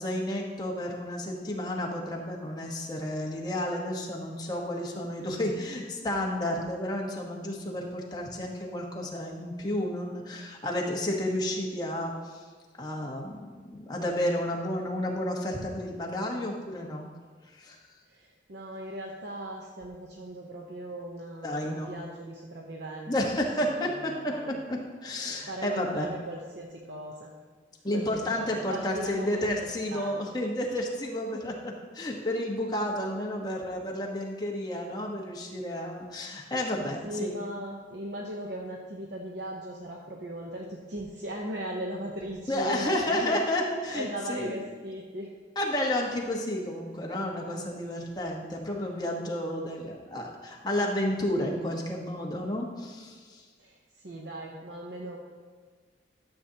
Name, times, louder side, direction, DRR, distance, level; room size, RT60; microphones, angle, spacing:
voice 1, 0.0-12.4 12.8-17.0 17.5-17.8 21.4-21.9 23.1-26.1 27.8-37.4 42.5-44.6 45.6-53.4, left 1 dB, 20° left, -1 dB, 1.2 m, -31 dB
voice 2, 18.0-23.3 23.6-24.6 25.4-27.3 27.9-30.2 37.0-43.4 43.9-45.3 53.6-55.2, right 1 dB, 60° right, 0 dB, 0.8 m, -38 dB
12.5 x 7.3 x 2.8 m, 1.5 s
head